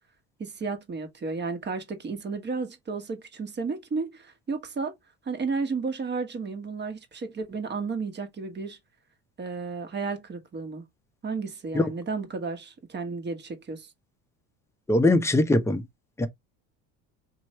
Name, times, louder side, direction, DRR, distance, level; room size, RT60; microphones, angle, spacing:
voice 1, 0.4-5.0 5.2-8.8 9.4-10.8 11.2-13.9, right 4 dB, 30° right, 1.4 m, -33 dB
voice 2, 14.9-15.8 16.2-16.3, left 2 dB, 5° left, 0.8 m, -21 dB
4.4 x 3.0 x 3.0 m
supercardioid pair, 105°, 36 cm